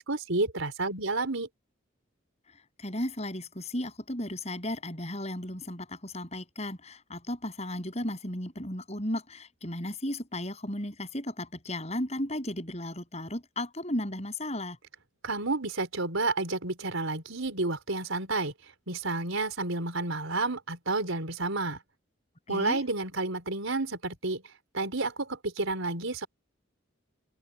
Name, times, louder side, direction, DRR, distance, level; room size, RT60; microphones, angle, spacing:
voice 1, 0.0-1.5 15.2-18.5 18.9-21.8 22.5-24.4 24.7-26.3, right 3 dB, 80° right, 4.6 m, -30 dB
voice 2, 2.8-14.8 22.5-22.8, left 1 dB, 30° left, 8.0 m, -35 dB
open air
head